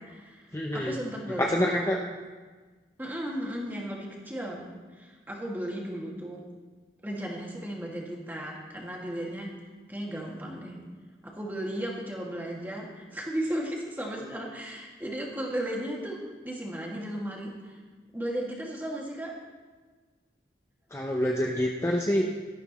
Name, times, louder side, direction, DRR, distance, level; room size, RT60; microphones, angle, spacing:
voice 1, 0.0-1.9 3.0-4.7 4.9-6.4 7.0-9.5 9.9-10.8 11.2-16.2 16.4-17.8 18.1-19.3, right 1 dB, 10° right, -3 dB, 2.1 m, -35 dB
voice 2, 0.5-1.0 1.4-2.0 20.9-22.3, equal, 15° left, 0 dB, 0.7 m, -26 dB
18.0 x 13.5 x 3.1 m, 1.4 s
head